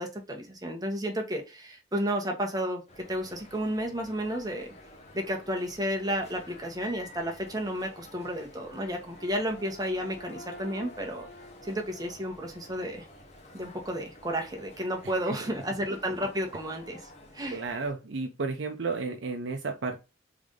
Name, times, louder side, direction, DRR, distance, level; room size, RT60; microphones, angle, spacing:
voice 1, 0.0-2.8 3.1-4.7 5.1-11.3 11.6-13.0 13.5-17.1 17.3-17.6, equal, 20° right, 2 dB, 1.1 m, -32 dB
sound 1, 2.9-17.9, left 2 dB, 35° left, 1.1 m, -50 dB
sound 2, 9.1-13.4, left 1 dB, 70° left, 0.9 m, -49 dB
voice 2, 17.5-20.0, right 4 dB, 75° right, 4 dB, 0.6 m, -32 dB
3.9 x 3.5 x 3.7 m, 0.28 s
head